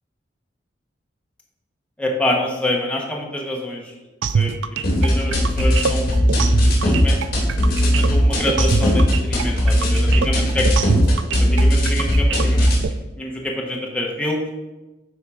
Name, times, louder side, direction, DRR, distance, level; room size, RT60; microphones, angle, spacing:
voice 1, 2.0-3.9 4.3-6.1 6.7-7.2 7.7-10.7 11.4-12.7 13.2-14.5, left 1 dB, 5° left, -1 dB, 1.0 m, -26 dB
sound 1, 4.2-12.9, right 6 dB, 90° right, 0.4 m, -25 dB
sound 2, 4.8-12.8, equal, 55° left, 2.6 m, -18 dB
10.0 x 3.7 x 4.8 m, 1.1 s
head